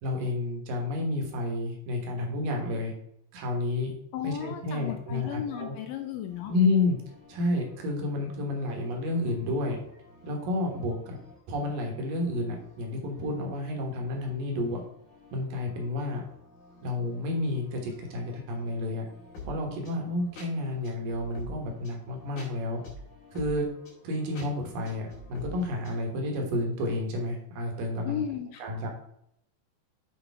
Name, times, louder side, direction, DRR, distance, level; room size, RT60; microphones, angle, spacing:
voice 1, 0.0-2.9 3.3-3.9 4.2-5.7 6.5-7.0 7.3-9.8 10.2-11.2 11.5-14.8 15.3-16.2 16.8-19.0 19.4-22.8 23.3-23.6 24.0-28.2 28.6-28.9, left 2 dB, 70° right, 1 dB, 2.9 m, -30 dB
voice 2, 4.1-6.5 28.0-28.6, left 9 dB, 85° left, 6 dB, 1.9 m, -34 dB
sound 1, 6.3-26.0, left 1 dB, 55° left, 3.3 m, -50 dB
8.2 x 4.9 x 3.5 m, 0.75 s
omnidirectional pair, 4.4 m